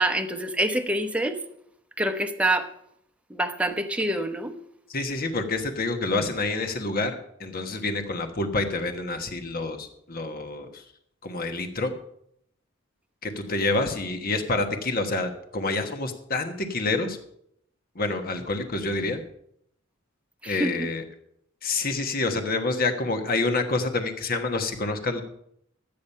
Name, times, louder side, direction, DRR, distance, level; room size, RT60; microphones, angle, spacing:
voice 1, 0.0-1.4 2.0-2.7 3.3-4.5 20.4-20.9, right 1 dB, 5° right, 0.8 m, -26 dB
voice 2, 4.9-7.1 7.4-10.8 11.2-11.9 13.2-17.2 17.9-19.2 20.4-21.0 21.6-25.2, left 3 dB, 45° left, 1.3 m, -27 dB
12.5 x 8.7 x 5.5 m
head